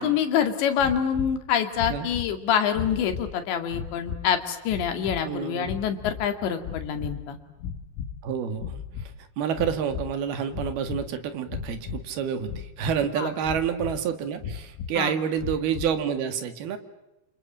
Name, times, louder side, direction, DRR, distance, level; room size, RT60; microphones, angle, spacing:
voice 1, 0.0-7.4 13.2-13.3 15.0-15.1, left 8 dB, 65° left, 7 dB, 4.3 m, -26 dB
sound 1, 0.8-1.4 1.7-2.4 2.7-3.3 3.7-4.3 4.7-5.2 5.6-6.3 6.6-7.3 7.6-8.2 8.5-9.1 9.5-10.2 10.5-11.1 11.5-12.0 12.5-13.1 13.4-14.0 14.4-14.9 15.4-16.0, left 7 dB, 85° left, 4.5 m, -35 dB
voice 2, 5.2-5.7 8.2-8.8 9.4-16.8, right 8 dB, 60° right, 9 dB, 3.4 m, -28 dB
29.0 x 28.0 x 7.3 m, 0.94 s
omnidirectional pair, 5.9 m